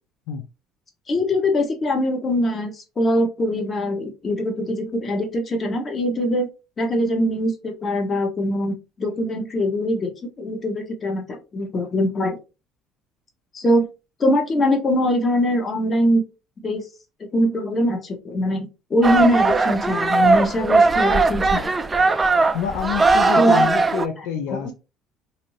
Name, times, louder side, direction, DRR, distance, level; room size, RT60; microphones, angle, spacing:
voice 1, 1.1-6.5 6.8-10.1 10.4-12.4 13.5-13.9 14.2-16.2 16.6-16.8 17.2-21.7 23.4-23.6 24.2-24.7, left 1 dB, 35° left, 1.0 m, -22 dB
sound 1, 19.0-24.1, right 3 dB, 20° right, 0.3 m, -18 dB
voice 2, 22.5-24.7, left 8 dB, 80° left, 0.4 m, -27 dB
2.6 x 2.6 x 3.1 m
supercardioid pair, 95°, 0 cm